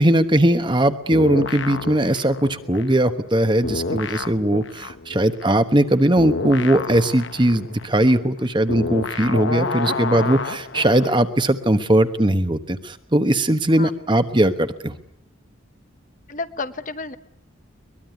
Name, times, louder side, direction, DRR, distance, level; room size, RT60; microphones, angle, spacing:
voice 1, 0.0-14.9, right 1 dB, 25° right, 10 dB, 1.1 m, -19 dB
sound 1, 1.1-3.4 3.6-11.2, left 3 dB, 65° left, 1.1 m, -29 dB
voice 2, 16.3-17.1, left 3 dB, 40° left, 11 dB, 1.0 m, -31 dB
22.5 x 21.5 x 9.5 m, 0.74 s
head